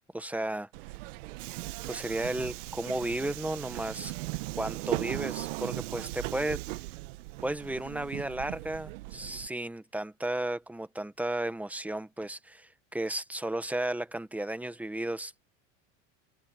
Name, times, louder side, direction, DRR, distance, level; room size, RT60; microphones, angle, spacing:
voice 1, 0.1-0.7 1.9-4.1 4.5-6.6 7.4-15.3, right 1 dB, 5° right, 1.1 m, -34 dB
Subway metro underground, 0.7-9.5, right 20 dB, 85° right, 1.1 m, -38 dB
open air
supercardioid pair, 120°, 36 cm